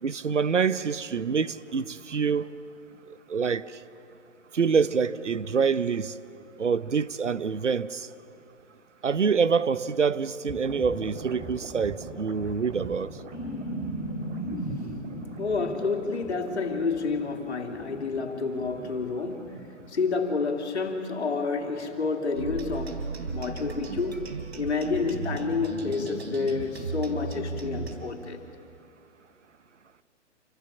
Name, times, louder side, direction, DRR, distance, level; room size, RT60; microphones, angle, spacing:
voice 1, 0.0-2.5 3.3-3.6 4.5-6.1 6.6-8.1 9.0-13.1, right 6 dB, 75° right, 0.9 m, -26 dB
sound 1, 10.5-19.9, right 1 dB, 20° right, 2.9 m, -38 dB
voice 2, 15.4-19.6 19.9-23.0 23.3-24.3 24.6-28.4, left 4 dB, 65° left, 3.0 m, -29 dB
sound 2, 22.4-28.0, right 4 dB, 60° right, 3.6 m, -35 dB
27.5 x 25.5 x 7.2 m
figure-of-eight pair, 125°, 36 cm